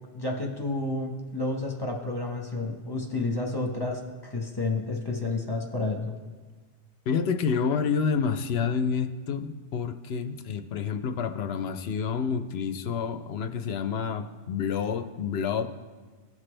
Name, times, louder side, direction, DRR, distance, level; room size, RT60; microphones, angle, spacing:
voice 1, 0.1-6.1, left 2 dB, 20° left, 0 dB, 1.2 m, -30 dB
voice 2, 7.1-15.7, left 6 dB, 70° left, 8 dB, 0.8 m, -28 dB
17.5 x 5.9 x 3.3 m, 1.4 s
omnidirectional pair, 1.2 m